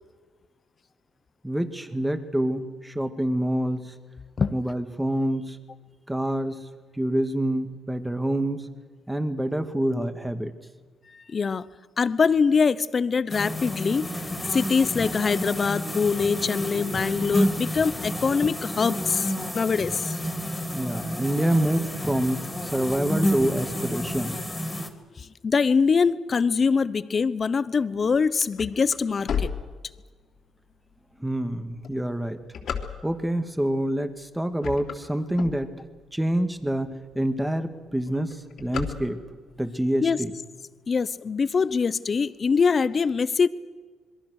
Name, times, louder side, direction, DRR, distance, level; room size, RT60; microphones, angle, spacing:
voice 1, 1.4-3.9 4.5-5.6 6.1-6.7 7.0-8.7 9.1-10.5 20.7-24.4 31.2-32.4 33.0-35.7 36.1-39.2 39.6-40.3, right 1 dB, 5° right, 8 dB, 2.1 m, -27 dB
voice 2, 11.3-11.6 12.0-14.2 14.5-20.2 25.2-29.5 40.0-40.2 40.9-43.5, left 5 dB, 40° left, 16 dB, 1.0 m, -23 dB
sound 1, 13.3-24.9, equal, 15° left, 3.3 m, -30 dB
sound 2, 28.1-30.4 30.9-31.0 31.7-33.4 34.0-34.2 34.5-36.1 36.6-36.7 36.9-37.0 37.3-37.6 37.9-39.5, left 7 dB, 65° left, 3.3 m, -33 dB
26.5 x 22.0 x 6.6 m, 1.4 s
cardioid pair, 90°, 0 cm